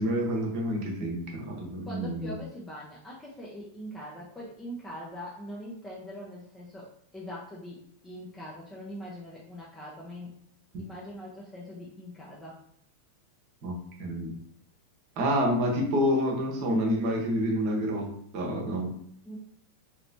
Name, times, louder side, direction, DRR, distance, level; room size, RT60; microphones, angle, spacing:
voice 1, 0.0-2.3 13.6-14.3 15.2-18.9, equal, 45° right, 0 dB, 1.0 m, -28 dB
voice 2, 1.8-10.3 10.8-12.6 19.3-19.4, equal, 10° left, -5 dB, 0.8 m, -42 dB
3.1 x 3.0 x 2.7 m, 0.66 s
figure-of-eight pair, 90°, 0 cm